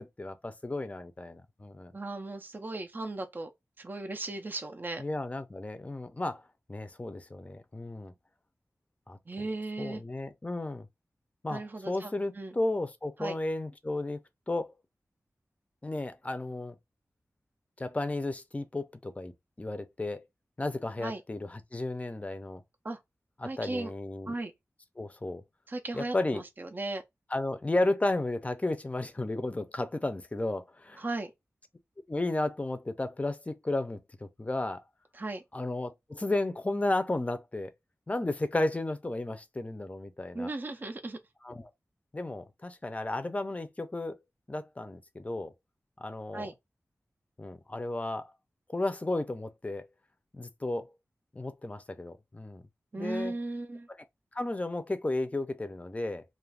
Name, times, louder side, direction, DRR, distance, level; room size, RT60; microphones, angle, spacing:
voice 1, 0.0-1.9 5.0-6.4 6.7-8.1 9.1-9.5 9.8-10.9 11.4-14.2 14.5-14.7 15.8-16.8 17.8-19.3 19.6-20.2 20.6-22.6 23.4-24.3 25.0-25.4 25.9-26.4 27.3-31.0 32.1-34.8 35.5-37.7 38.1-40.5 41.4-41.7 42.1-44.2 44.5-45.5 46.0-46.5 47.4-48.3 48.7-49.8 50.3-50.9 51.3-52.6 53.0-53.3 54.3-56.2, left 2 dB, 25° left, 0.5 m, -33 dB
voice 2, 1.9-3.5 3.8-5.0 9.3-10.0 11.5-12.6 13.2-13.3 21.0-21.2 22.8-23.0 23.4-23.9 24.3-24.5 25.7-27.0 31.0-31.3 35.1-35.4 40.3-41.2 46.3-46.5 52.9-53.9, right 2 dB, 35° right, 0.4 m, -36 dB
2.4 x 2.1 x 3.3 m
wide cardioid pair, 80°, 6 cm